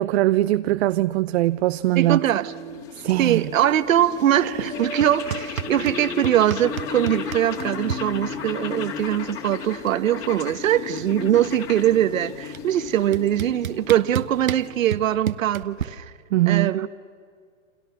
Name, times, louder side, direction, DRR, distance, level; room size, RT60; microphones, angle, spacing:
voice 1, 0.0-2.2 3.0-3.5 4.4-4.7 16.3-16.7, right 16 dB, 50° right, 0.7 m, -21 dB
sound 1, 1.7-15.1, left 7 dB, 35° left, 3.5 m, -36 dB
voice 2, 1.9-2.5 3.2-16.1 16.5-16.9, right 11 dB, 70° right, 1.3 m, -22 dB
sound 2, 2.1-2.9 4.0-9.0, left 1 dB, 15° left, 2.5 m, -36 dB
sound 3, 5.0-6.0 6.2-8.0 9.3-9.4 9.6-10.0 10.3-11.7 12.5-12.6 13.1-15.8, right 9 dB, 90° right, 1.2 m, -31 dB
29.0 x 27.5 x 7.1 m
hypercardioid pair, 130°, 41 cm